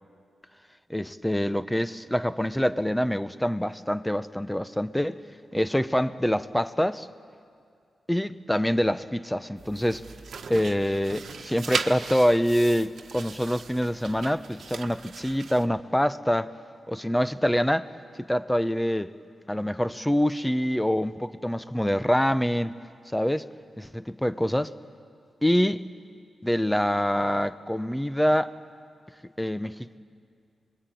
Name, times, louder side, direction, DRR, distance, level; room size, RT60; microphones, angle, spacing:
voice 1, 0.9-5.2 5.5-7.1 8.1-10.0 10.5-16.5 16.9-17.9 18.2-19.1 19.5-22.7 23.1-23.5 23.8-24.7 25.4-25.8 26.4-28.5 29.4-30.0, equal, 5° left, 13 dB, 0.7 m, -25 dB
sound 1, 9.6-15.7, right 5 dB, 70° right, 1.3 m, -37 dB
25.0 x 21.5 x 9.2 m, 2.2 s
cardioid pair, 90°, 0 cm